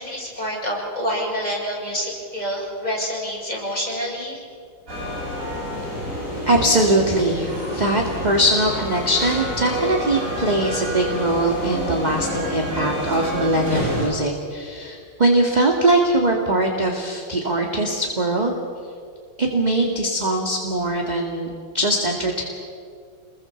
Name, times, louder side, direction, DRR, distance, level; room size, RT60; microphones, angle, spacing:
voice 1, 0.0-4.4, equal, 20° left, -4 dB, 7.5 m, -27 dB
sound 1, 4.9-14.1, left 1 dB, 35° right, 7.4 m, -28 dB
voice 2, 6.5-18.5 19.4-22.4, right 1 dB, 20° right, 1 dB, 1.9 m, -21 dB
27.0 x 21.5 x 7.1 m, 2.2 s
omnidirectional pair, 2.3 m